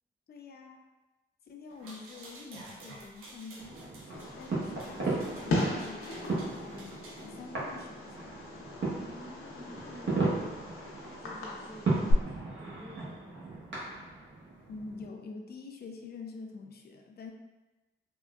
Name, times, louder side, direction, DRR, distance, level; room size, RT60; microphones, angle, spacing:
voice 1, 0.3-0.8 1.4-8.3 14.7-17.3, left 4 dB, 50° left, 3 dB, 0.5 m, -46 dB
sound 1, 1.7-7.3, right 2 dB, 90° right, 0.5 m, -51 dB
sound 2, 3.6-15.1, right 3 dB, 60° right, 1.0 m, -36 dB
Fireworks, 4.1-12.1, left 2 dB, 85° left, 0.7 m, -38 dB
voice 2, 9.0-10.9 11.2-13.8, equal, 5° left, -7 dB, 0.6 m, -50 dB
3.6 x 2.1 x 2.3 m, 1.1 s
cardioid pair, 55°, 21 cm